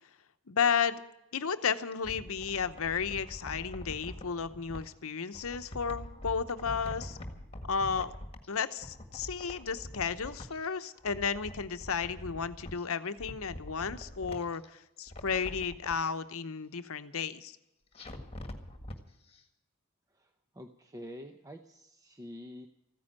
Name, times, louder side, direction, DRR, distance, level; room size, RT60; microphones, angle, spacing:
voice 1, 0.5-1.0 1.3-7.2 7.7-8.1 8.5-17.6, left 6 dB, 65° left, 11 dB, 0.8 m, -33 dB
sound 1, 1.7-4.9 5.3-8.5 8.8-10.7 11.0-12.8 13.2-14.7 15.0-16.0 17.9-19.0 19.3-19.4, left 1 dB, 25° left, 1.7 m, -44 dB
voice 2, 20.1-22.7, equal, 15° right, 5 dB, 0.7 m, -47 dB
15.0 x 9.7 x 8.7 m, 0.88 s
head